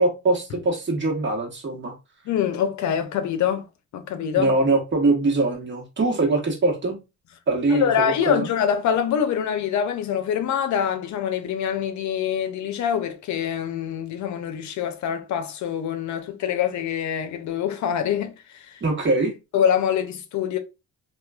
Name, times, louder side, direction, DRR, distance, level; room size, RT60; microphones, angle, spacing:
voice 1, 0.0-2.0 4.3-7.0 7.5-8.5 18.8-19.3, right 2 dB, 40° right, 1.2 m, -22 dB
voice 2, 2.3-3.7 3.9-4.5 7.7-18.3 18.7-18.8 19.5-20.6, left 8 dB, 70° left, 0.6 m, -25 dB
2.9 x 2.4 x 2.3 m
cardioid pair, 90°, 30 cm